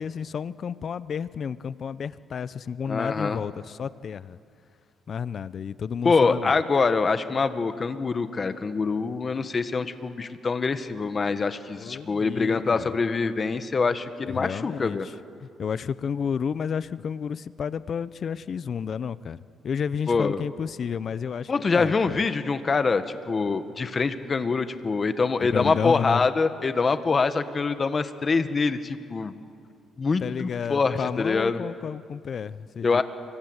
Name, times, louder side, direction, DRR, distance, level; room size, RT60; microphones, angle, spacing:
voice 1, 0.0-4.4 5.1-6.5 11.8-12.9 14.2-15.1 15.4-19.4 19.6-22.2 25.4-26.3 30.2-33.0, left 7 dB, 55° left, 17 dB, 0.7 m, -31 dB
voice 2, 2.9-3.4 6.0-15.1 20.1-20.4 21.5-29.3 30.0-31.6 32.8-33.0, left 4 dB, 35° left, 10 dB, 1.6 m, -25 dB
28.5 x 24.5 x 8.1 m, 2.3 s
cardioid pair, 90°, 0 cm